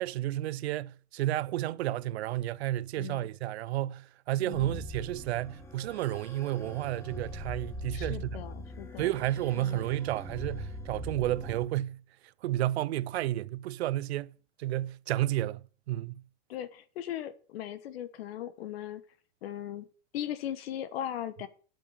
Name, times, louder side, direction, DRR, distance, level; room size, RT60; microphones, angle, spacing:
voice 1, 0.0-8.3 9.0-12.0 12.4-14.3 14.6-16.2, right 14 dB, 60° right, 0.6 m, -31 dB
voice 2, 3.0-3.3 4.4-4.8 7.9-9.1 9.5-9.8 16.5-19.0 19.4-19.9 20.1-21.5, left 11 dB, 55° left, 1.3 m, -38 dB
sound 1, 4.5-11.7, left 1 dB, 5° left, 1.3 m, -42 dB
8.4 x 7.4 x 8.6 m
supercardioid pair, 155°, 36 cm